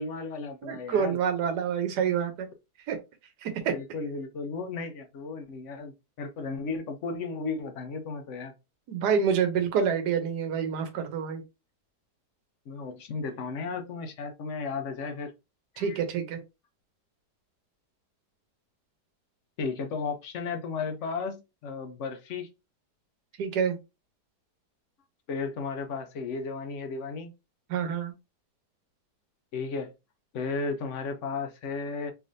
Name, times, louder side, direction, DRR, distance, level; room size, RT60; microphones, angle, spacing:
voice 1, 0.0-1.2 3.7-8.5 12.7-15.3 15.7-16.0 19.6-22.5 25.3-27.3 29.5-29.9 30.3-32.1, left 4 dB, 60° left, 0.9 m, -34 dB
voice 2, 0.6-2.5 2.9-3.0 3.4-3.7 8.9-11.4 15.8-16.4 23.4-23.8 27.7-28.1, right 7 dB, 75° right, 1.4 m, -27 dB
3.4 x 3.3 x 2.6 m
omnidirectional pair, 1.8 m